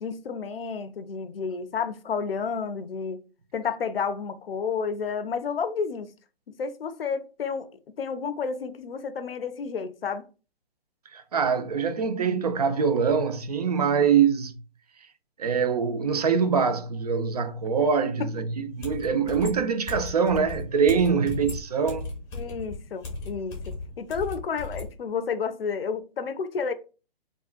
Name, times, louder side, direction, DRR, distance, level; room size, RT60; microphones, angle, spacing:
voice 1, 0.0-3.2 3.5-6.1 6.5-7.7 8.0-10.2 22.3-26.7, left 5 dB, 65° left, 0.6 m, -31 dB
voice 2, 11.1-14.6 15.4-22.1, right 6 dB, 40° right, 0.4 m, -24 dB
sound 1, 18.5-18.6 18.8-24.9, left 3 dB, 10° left, 0.7 m, -36 dB
3.5 x 2.2 x 2.4 m
figure-of-eight pair, 140°, 31 cm